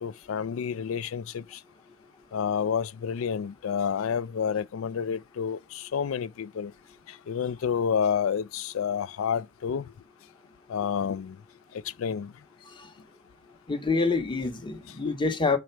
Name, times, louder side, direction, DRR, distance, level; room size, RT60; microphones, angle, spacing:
voice 1, 0.0-1.6 2.3-6.7 7.3-9.9 10.7-11.4 12.0-12.3 15.0-15.1, left 7 dB, 75° left, 0.4 m, -29 dB
voice 2, 13.7-15.6, left 3 dB, 25° left, 1.0 m, -26 dB
6.4 x 3.3 x 4.4 m
head